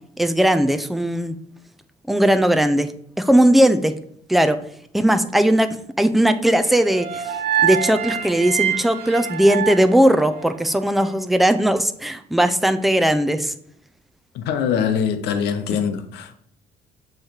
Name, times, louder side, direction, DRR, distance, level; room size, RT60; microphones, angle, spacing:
voice 1, 0.2-1.4 2.1-2.9 3.2-3.9 4.3-4.6 4.9-13.5, right 1 dB, ahead, 0.5 m, -18 dB
sound 1, 6.7-10.9, right 9 dB, 65° right, 0.8 m, -26 dB
voice 2, 14.3-16.4, left 7 dB, 80° left, 0.8 m, -23 dB
7.1 x 3.2 x 4.4 m
cardioid pair, 110°, 17 cm